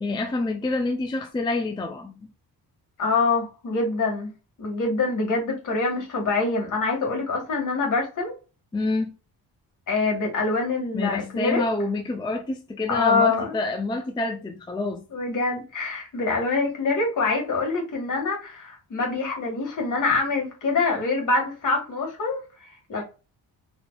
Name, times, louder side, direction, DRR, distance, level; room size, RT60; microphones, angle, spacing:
voice 1, 0.0-2.2 8.7-9.2 10.9-15.0, left 2 dB, 10° left, 0.4 m, -27 dB
voice 2, 3.0-4.3 4.6-8.3 9.9-11.6 12.9-13.5 15.1-23.0, left 3 dB, 55° left, 1.6 m, -25 dB
4.3 x 2.8 x 2.2 m
cardioid pair, 125°, 37 cm